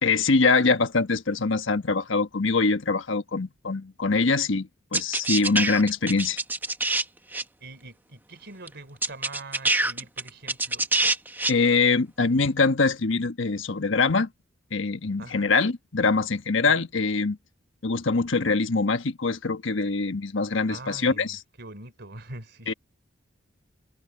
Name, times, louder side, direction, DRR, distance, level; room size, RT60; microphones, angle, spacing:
voice 1, 0.0-6.4 11.5-14.3 14.7-17.4 17.8-21.4 22.7-22.8, left 4 dB, 80° left, 1.3 m, -23 dB
sound 1, 4.9-7.0 7.3-7.4 8.7-8.8 9.0-11.5, right 2 dB, 10° right, 1.3 m, -25 dB
voice 2, 7.6-10.9 15.2-15.5 16.7-16.8 20.7-22.7, right 2 dB, 60° right, 3.9 m, -43 dB
head